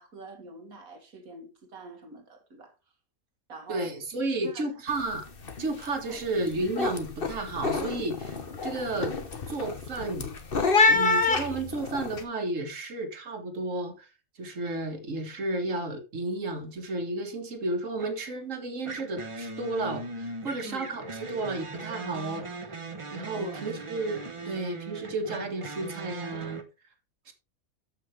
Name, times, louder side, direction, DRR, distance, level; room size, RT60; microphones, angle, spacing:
voice 1, 0.0-2.7 3.5-3.9 4.3-4.7 6.1-6.2 20.6-20.9 23.3-23.6, right 2 dB, 85° right, 2.4 m, -45 dB
voice 2, 3.7-5.3 5.6-9.1 9.5-10.3 10.9-14.1 14.4-22.7 23.1-26.6 27.3-27.4, right 2 dB, 60° right, 2.0 m, -32 dB
sound 1, 4.9-5.1 5.4-5.9 6.2-12.2, left 3 dB, 40° left, 1.4 m, -27 dB
sound 2, 18.0-18.3 18.8-26.6, right 3 dB, 25° right, 1.0 m, -39 dB
13.5 x 5.8 x 3.3 m
omnidirectional pair, 1.5 m